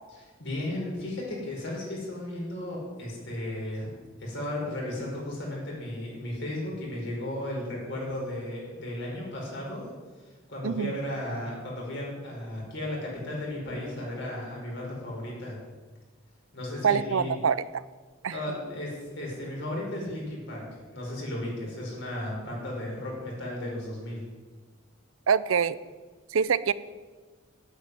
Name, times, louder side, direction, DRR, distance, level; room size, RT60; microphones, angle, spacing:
voice 1, 0.2-3.9 4.2-9.9 10.2-15.6 16.5-17.4 18.3-20.6 20.9-24.2, left 1 dB, 60° left, -3 dB, 5.2 m, -35 dB
voice 2, 16.8-17.6 18.2-18.3 25.3-25.8 26.3-26.7, right 6 dB, 75° right, 17 dB, 0.5 m, -24 dB
9.2 x 8.8 x 9.7 m, 1.4 s
head